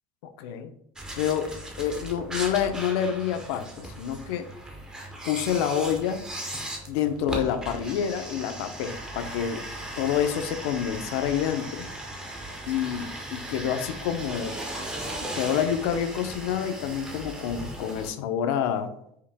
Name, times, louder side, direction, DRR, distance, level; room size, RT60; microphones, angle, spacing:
voice 1, 0.4-0.7 1.2-1.5 1.8-4.5 5.3-6.2 6.9-9.6 10.0-11.9 12.7-14.5 15.2-18.9, left 9 dB, 75° left, 9 dB, 0.5 m, -28 dB
sound 1, 1.0-18.1, right 1 dB, 5° right, 0.4 m, -37 dB
4.8 x 2.8 x 3.4 m, 0.74 s
cardioid pair, 180°, 13 cm